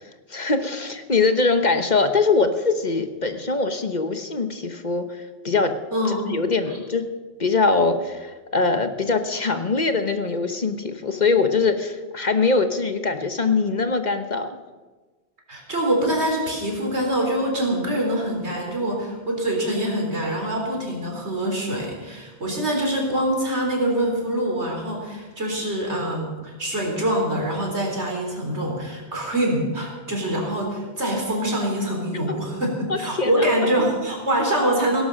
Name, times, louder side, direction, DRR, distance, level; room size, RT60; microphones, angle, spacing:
voice 1, 0.3-5.7 6.1-7.1 7.4-14.6 32.9-33.5, left 4 dB, 45° left, 8 dB, 1.1 m, -22 dB
voice 2, 5.9-6.4 15.5-35.0, right 1 dB, 80° right, 0 dB, 4.2 m, -24 dB
17.5 x 11.5 x 6.5 m, 1.3 s
omnidirectional pair, 1.1 m